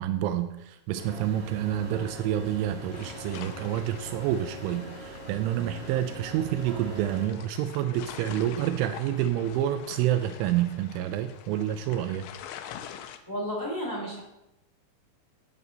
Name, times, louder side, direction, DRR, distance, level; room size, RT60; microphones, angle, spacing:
voice 1, 0.0-12.3, right 11 dB, 85° right, 9 dB, 3.1 m, -28 dB
sound 1, 0.9-7.3, right 2 dB, 65° right, 4.4 m, -42 dB
sound 2, 2.9-13.2, left 9 dB, 90° left, 3.1 m, -45 dB
voice 2, 13.3-14.2, equal, 5° right, -5 dB, 3.3 m, -32 dB
15.0 x 7.8 x 3.9 m, 0.86 s
omnidirectional pair, 5.4 m